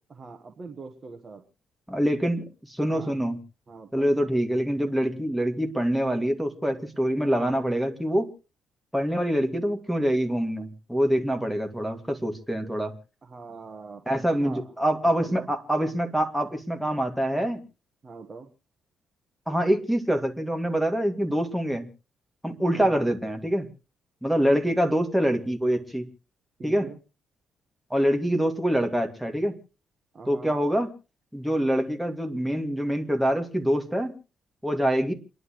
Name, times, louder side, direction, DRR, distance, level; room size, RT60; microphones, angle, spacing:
voice 1, 0.1-1.4 2.9-3.2 3.7-4.1 13.2-14.6 15.0-15.5 18.0-18.5 22.7-23.1 26.6-27.0 30.1-30.6, right 4 dB, 35° right, 3 dB, 1.3 m, -43 dB
voice 2, 1.9-3.4 3.9-8.3 8.9-12.9 14.1-17.6 19.5-21.9 22.4-23.7 24.2-26.1 26.6-26.9 27.9-29.5 30.3-30.9 31.3-34.1 34.6-35.1, equal, ahead, 4 dB, 2.2 m, -25 dB
29.0 x 11.0 x 3.1 m, 0.32 s
cardioid pair, 115°, 0 cm